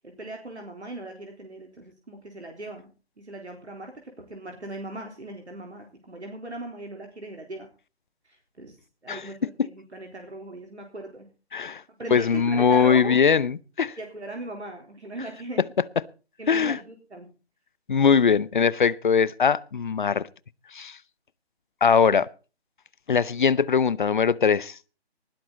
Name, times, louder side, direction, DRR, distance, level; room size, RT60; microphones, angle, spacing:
voice 1, 0.0-2.9 3.2-7.7 8.2-8.8 9.0-11.3 12.0-13.2 14.0-15.6 16.4-17.3, right 1 dB, 85° right, 3.9 m, -39 dB
voice 2, 12.1-13.9 16.5-16.8 17.9-20.3 20.7-21.0 21.8-22.3 23.1-24.7, left 6 dB, 50° left, 0.8 m, -21 dB
19.5 x 11.5 x 4.1 m
figure-of-eight pair, 150°, 33 cm